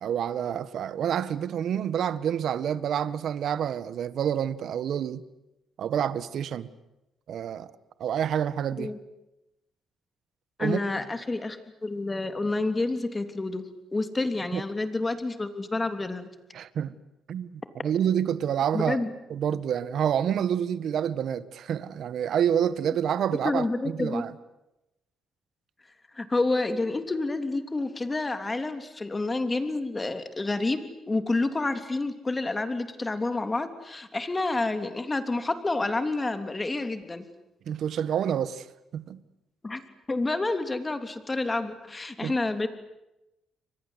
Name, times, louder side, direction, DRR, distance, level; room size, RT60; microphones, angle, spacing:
voice 1, 0.0-5.2 5.8-6.7 7.3-7.7 8.0-8.9 10.6-10.8 14.5-14.6 16.5-17.0 17.3-19.0 19.3-24.3 37.6-38.7 38.9-39.2 42.2-42.3, right 9 dB, 65° right, 1.5 m, -28 dB
voice 2, 10.6-13.6 13.9-16.3 18.7-19.1 23.4-24.2 26.1-30.8 31.1-37.2 39.6-39.8 40.1-42.7, left 2 dB, 20° left, 3.2 m, -29 dB
29.5 x 24.0 x 8.3 m
cardioid pair, 90°, 0 cm